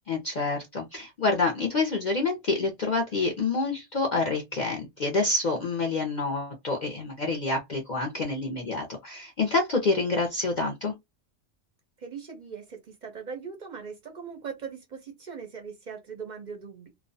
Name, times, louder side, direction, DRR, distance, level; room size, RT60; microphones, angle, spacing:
voice 1, 0.1-10.9, left 3 dB, 55° left, 0.5 m, -27 dB
voice 2, 12.0-16.9, right 6 dB, 50° right, 0.5 m, -40 dB
2.3 x 2.1 x 2.6 m
omnidirectional pair, 1.3 m